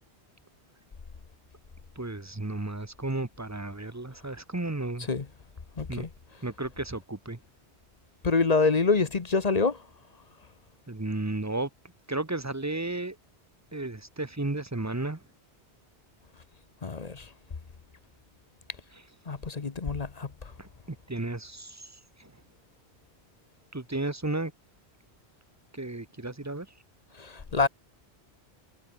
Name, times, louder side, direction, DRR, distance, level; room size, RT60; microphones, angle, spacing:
voice 1, 2.0-5.1 5.9-6.1 6.4-7.4 10.9-11.7 12.1-13.2 13.7-15.2 18.9-19.0 20.6-21.9 22.2-22.3 23.7-24.5 25.7-26.7, right 2 dB, 15° right, 1.0 m, -33 dB
voice 2, 5.8-6.1 8.2-9.8 16.8-17.3 19.3-20.3 27.2-27.7, left 4 dB, 40° left, 1.1 m, -26 dB
omnidirectional pair, 1.2 m